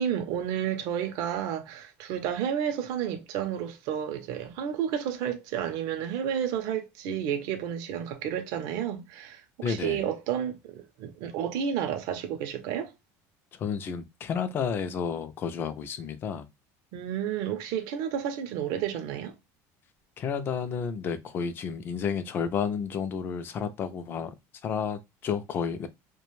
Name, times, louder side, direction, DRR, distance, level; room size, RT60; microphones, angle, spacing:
voice 1, 0.0-12.9 16.9-19.3, right 9 dB, 55° right, 0.5 m, -31 dB
voice 2, 9.6-10.0 13.6-16.5 20.2-24.3 24.6-25.9, left 6 dB, 30° left, 0.3 m, -31 dB
2.4 x 2.1 x 3.1 m
cardioid pair, 165°, 8 cm